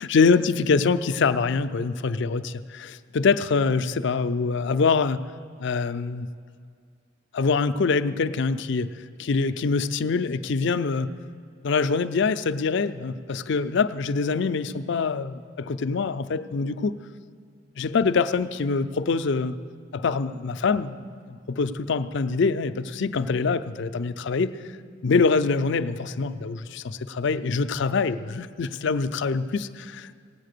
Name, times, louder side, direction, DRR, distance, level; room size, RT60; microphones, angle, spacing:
voice 1, 0.0-5.2 5.6-6.3 7.3-8.9 9.2-11.1 11.6-16.9 17.8-19.5 19.9-24.6 25.0-30.2, left 4 dB, 60° left, 12 dB, 0.4 m, -24 dB
17.5 x 8.3 x 6.6 m, 2.2 s
head